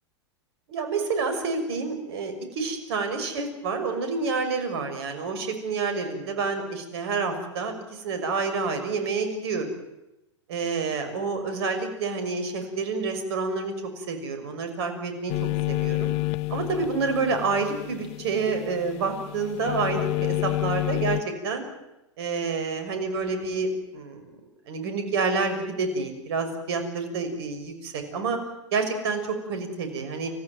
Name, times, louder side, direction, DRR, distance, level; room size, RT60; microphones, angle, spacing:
voice 1, 0.7-9.7 10.5-15.3 15.7-16.1 16.5-21.2 21.4-21.6 22.2-24.2 24.7-28.4 28.7-29.2 29.5-30.3, right 4 dB, 60° right, 7 dB, 6.3 m, -28 dB
sound 1, 15.3-21.2, left 21 dB, 40° left, 0.8 m, -29 dB
30.0 x 15.5 x 9.5 m, 0.93 s
figure-of-eight pair, 95°, 15 cm